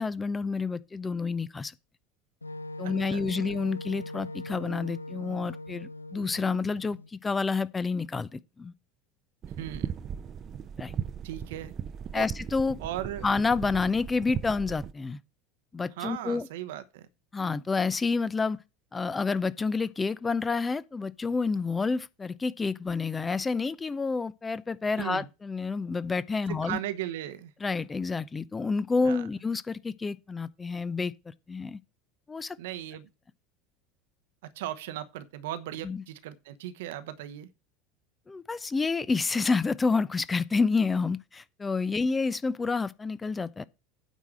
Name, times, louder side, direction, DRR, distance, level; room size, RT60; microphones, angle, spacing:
voice 1, 0.0-1.7 2.8-8.7 10.8-10.9 12.1-12.8 13.2-15.2 15.7-16.5 17.3-18.6 18.9-26.8 27.6-31.1 31.5-31.8 32.3-32.6 35.8-36.0 38.3-43.6, left 4 dB, 20° left, 0.6 m, -29 dB
Wind instrument woodwind instrument, 2.4-7.1, left 1 dB, 85° left, 0.5 m, -40 dB
voice 2, 2.8-3.2 9.6-10.0 11.2-11.7 12.1-12.3 12.8-13.3 16.0-17.1 25.0-25.3 26.5-27.5 29.0-29.2 32.6-33.1 34.4-37.5, right 12 dB, 65° right, 0.9 m, -37 dB
sound 1, 9.4-14.9, right 8 dB, 35° right, 0.7 m, -37 dB
9.2 x 4.8 x 7.4 m
figure-of-eight pair, 75°, 0 cm